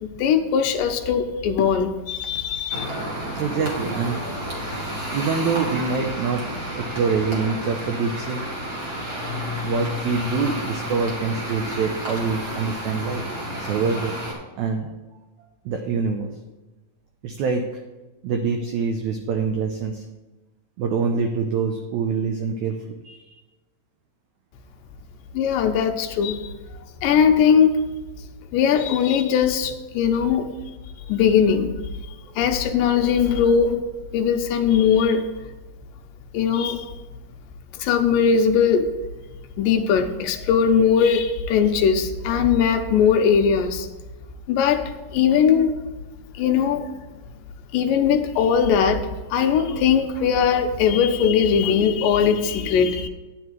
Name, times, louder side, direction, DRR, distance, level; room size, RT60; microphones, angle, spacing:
voice 1, 0.0-2.9 25.3-26.5 27.0-27.8 28.5-30.5 31.1-31.8 32.4-33.8 34.1-35.3 36.3-36.9 37.7-38.9 39.6-43.9 44.5-44.8 45.1-45.7 46.4-46.9 47.7-53.1, left 7 dB, 80° left, 6 dB, 2.3 m, -20 dB
sound 1, 2.7-14.3, equal, 30° right, 2.1 m, -31 dB
voice 2, 3.4-4.2 5.1-6.4 6.7-8.4 9.6-13.2 13.6-14.2 14.6-14.9 15.7-16.3 17.2-17.6 18.2-20.0 20.8-22.8 23.0-23.3 32.3-32.4, right 5 dB, 85° right, 4 dB, 1.6 m, -25 dB
10.5 x 9.7 x 3.2 m, 1.2 s
omnidirectional pair, 4.1 m